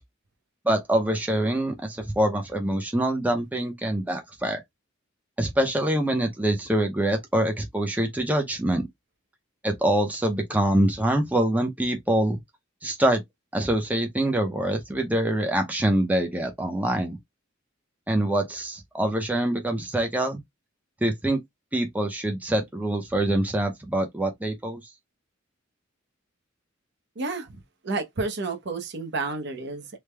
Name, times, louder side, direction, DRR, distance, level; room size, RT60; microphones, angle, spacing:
voice 1, 0.6-4.6 5.4-8.8 9.6-12.4 12.8-13.2 13.5-17.2 18.1-20.4 21.0-21.4 21.7-24.8, right 1 dB, 10° right, 0.6 m, -25 dB
voice 2, 27.2-27.5 27.8-30.0, right 3 dB, 60° right, 0.8 m, -30 dB
3.3 x 2.1 x 3.2 m
head